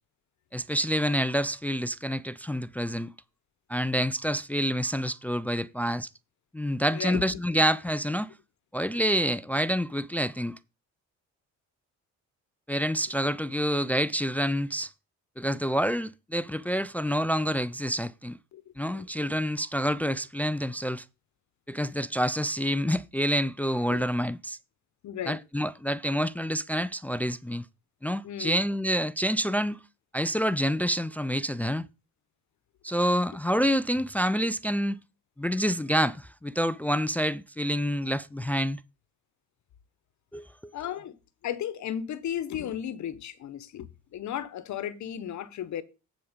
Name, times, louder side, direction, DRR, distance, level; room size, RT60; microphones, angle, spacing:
voice 1, 0.5-3.1 3.7-6.1 6.5-8.3 8.7-10.6 12.7-14.9 15.4-18.4 18.8-21.0 21.7-24.6 25.3-27.6 28.0-29.8 30.1-31.9 32.8-35.0 35.4-38.8 40.3-40.7, equal, 5° left, 0.4 m, -27 dB
voice 2, 6.9-7.4 18.5-18.6 18.9-19.3 23.9-24.1 25.0-25.4 28.2-28.6 40.7-41.2 41.4-45.8, left 10 dB, 70° left, 1.1 m, -35 dB
9.7 x 5.0 x 5.1 m
cardioid pair, 90°, 30 cm